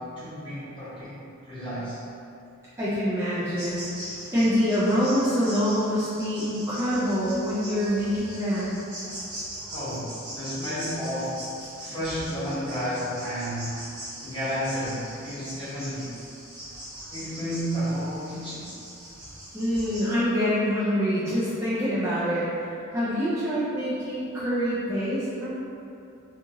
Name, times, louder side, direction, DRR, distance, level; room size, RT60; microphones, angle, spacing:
voice 1, 0.0-2.0 9.7-11.5 11.8-13.9 14.2-16.2 17.1-18.7, equal, 20° left, -12 dB, 1.0 m, -32 dB
voice 2, 2.8-8.8 19.5-25.6, equal, 10° right, -12 dB, 0.4 m, -26 dB
sound 1, 3.6-20.1, right 1 dB, 75° right, 1.0 m, -41 dB
2.8 x 2.4 x 2.6 m, 2.6 s
head